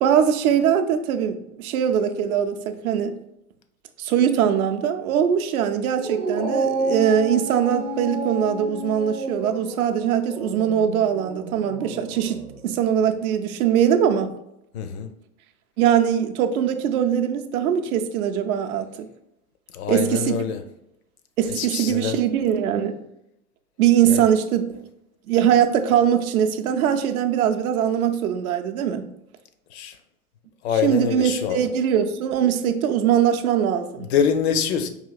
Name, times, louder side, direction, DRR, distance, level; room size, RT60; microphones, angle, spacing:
voice 1, 0.0-3.2 4.0-14.3 15.8-19.1 19.9-20.4 21.4-22.9 23.8-24.7 25.3-29.1 30.8-34.1, right 9 dB, 65° right, 7 dB, 0.6 m, -21 dB
Dog, 5.9-12.6, right 2 dB, 10° right, 0.4 m, -30 dB
voice 2, 14.7-15.1 19.7-20.6 21.5-22.2 24.0-24.3 29.7-30.0 30.6-31.7 34.0-34.9, left 7 dB, 45° left, 9 dB, 0.5 m, -25 dB
4.9 x 2.8 x 2.3 m, 0.81 s
hypercardioid pair, 105°, 47 cm